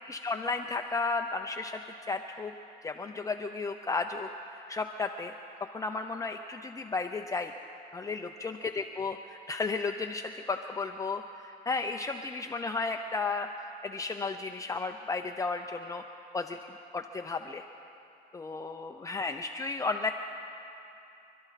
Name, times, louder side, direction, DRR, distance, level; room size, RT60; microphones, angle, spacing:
voice 1, 0.0-1.8 2.1-2.5 2.8-5.4 5.7-7.5 7.9-13.5 13.8-16.0 16.3-16.6 16.9-17.6 18.3-20.1, left 4 dB, 20° left, 4 dB, 0.6 m, -33 dB
26.5 x 12.0 x 4.1 m, 2.7 s
cardioid pair, 110°, 17 cm